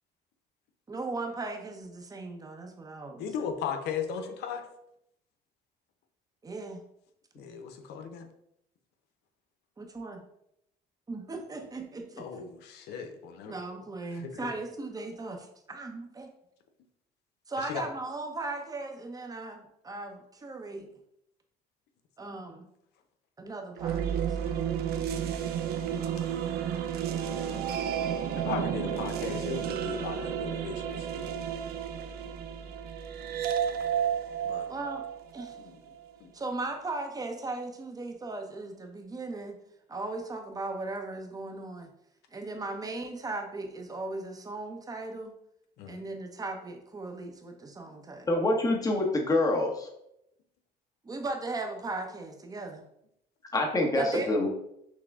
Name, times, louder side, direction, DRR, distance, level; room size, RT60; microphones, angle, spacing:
voice 1, 0.9-3.3 6.4-6.8 9.8-10.2 11.1-12.3 13.5-16.3 17.5-20.9 22.2-22.7 23.4-24.8 28.8-29.0 34.7-35.0 35.3-35.6 36.3-39.6 39.9-41.9 42.3-45.3 45.9-48.3 51.0-52.8 53.9-54.4, right 3 dB, 20° right, 4 dB, 0.7 m, -37 dB
voice 2, 3.2-4.7 7.3-8.3 12.2-13.5 14.1-14.5 17.6-17.9 25.5-26.0 28.3-31.4 33.2-33.3 33.7-33.8 34.4-34.7 35.6-35.8 36.2-36.3 45.8-46.0, left 7 dB, 80° left, 7 dB, 0.6 m, -37 dB
sound 1, 23.8-35.9, right 8 dB, 70° right, 0.5 m, -32 dB
voice 3, 48.3-49.9 53.5-54.5, left 2 dB, 20° left, 1 dB, 0.9 m, -26 dB
6.1 x 2.1 x 3.4 m, 0.78 s
cardioid pair, 110°, 17 cm